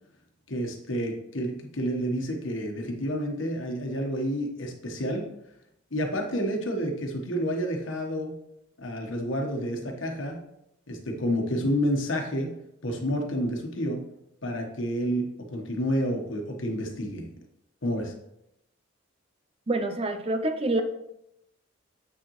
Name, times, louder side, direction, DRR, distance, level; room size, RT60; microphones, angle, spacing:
voice 1, 0.5-5.3 5.9-8.3 8.8-10.4 10.9-12.5 12.8-14.0 14.4-17.3 17.8-18.1, equal, 70° left, 2 dB, 1.3 m, -29 dB
voice 2, 19.7-20.8, right 2 dB, 30° right, 8 dB, 0.5 m, -26 dB
7.6 x 6.5 x 3.2 m, 0.81 s
head